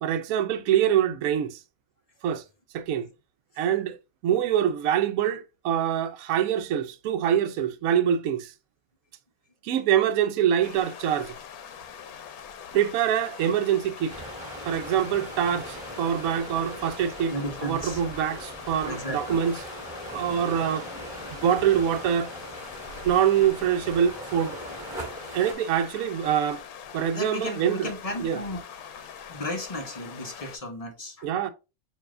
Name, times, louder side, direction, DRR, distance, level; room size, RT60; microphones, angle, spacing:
voice 1, 0.0-1.6 2.2-2.4 2.7-3.1 3.6-4.0 4.2-8.5 9.6-11.3 12.7-14.1 14.6-17.3 17.6-19.6 20.1-20.9 21.3-22.3 23.0-24.6 25.3-26.6 26.9-27.9 28.2-28.4 31.2-31.5, right 9 dB, 75° right, 1.0 m, -25 dB
sound 1, 10.6-30.6, left 7 dB, 85° left, 1.1 m, -43 dB
sound 2, 14.1-25.5, right 1 dB, 5° right, 1.9 m, -40 dB
voice 2, 17.3-18.0 18.9-19.4 20.2-20.3 27.1-28.6 29.0-31.3, left 1 dB, 30° left, 0.8 m, -35 dB
6.7 x 2.8 x 2.4 m
omnidirectional pair, 1.5 m